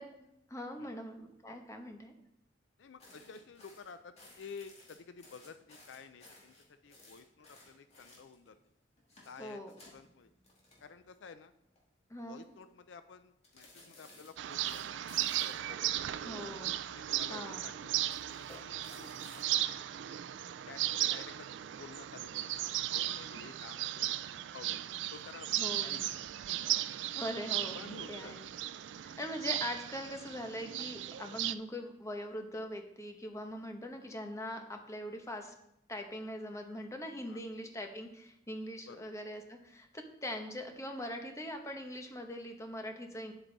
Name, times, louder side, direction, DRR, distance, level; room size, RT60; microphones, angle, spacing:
voice 1, 0.0-2.1 9.4-9.7 12.1-12.4 16.2-16.7 17.3-17.7 25.6-26.1 27.1-27.8 28.1-28.5 29.0-35.5 35.9-43.3, left 1 dB, 15° left, 4 dB, 1.0 m, -42 dB
voice 2, 2.8-6.5 6.8-8.6 9.2-9.6 9.9-10.3 10.8-11.5 12.2-15.0 15.4-16.3 16.9-19.8 20.7-21.5 21.8-24.1 24.5-26.1 26.5-26.6 27.0-27.3 27.7-28.3 29.1-29.3 37.3-37.4 38.9-39.0, left 5 dB, 75° left, 11 dB, 0.4 m, -52 dB
sound 1, 3.0-8.5 9.0-11.3 11.6-11.8 12.2-12.6 13.4-15.7 16.4-17.2 18.0-19.5, left 2 dB, 35° left, 2.3 m, -58 dB
sound 2, 14.4-31.5, right 13 dB, 70° right, 0.3 m, -36 dB
8.9 x 8.0 x 4.0 m, 0.80 s
head